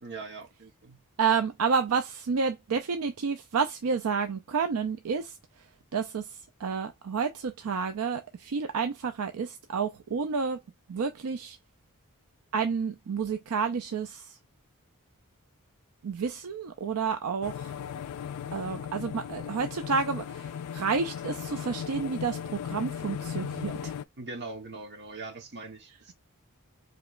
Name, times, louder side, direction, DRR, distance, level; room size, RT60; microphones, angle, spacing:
voice 1, 0.0-1.0 24.2-26.1, right 3 dB, 50° right, 1.1 m, -41 dB
voice 2, 1.2-5.4 5.9-10.6 10.9-11.6 12.5-14.4 16.0-17.7 18.5-23.9, right 5 dB, 70° right, 0.5 m, -30 dB
sound 1, 17.4-24.0, left 8 dB, 85° left, 0.3 m, -37 dB
5.0 x 3.1 x 2.5 m
head